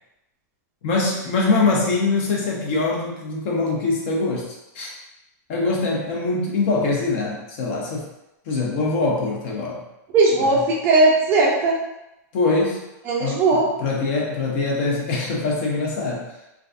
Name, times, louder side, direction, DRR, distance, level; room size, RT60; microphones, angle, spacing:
voice 1, 0.8-4.9 5.5-8.1 8.5-9.8 10.4-10.6 12.3-12.8 13.2-16.3, left 3 dB, 45° left, -2 dB, 0.6 m, -23 dB
voice 2, 10.1-11.8 13.1-13.7, right 3 dB, 20° right, -3 dB, 0.3 m, -18 dB
2.3 x 2.3 x 2.5 m, 0.91 s
supercardioid pair, 165°, 10 cm